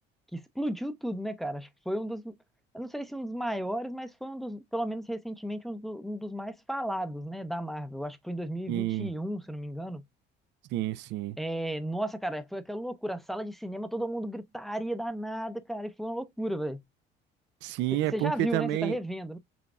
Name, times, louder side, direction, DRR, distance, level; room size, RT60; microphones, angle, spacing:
voice 1, 0.3-2.4 2.7-10.0 11.4-16.8 18.1-19.4, right 1 dB, ahead, 0.6 m, -34 dB
voice 2, 8.7-9.1 10.7-11.4 17.6-19.0, right 15 dB, 65° right, 0.4 m, -29 dB
6.0 x 2.2 x 3.5 m
cardioid pair, 125°, 20 cm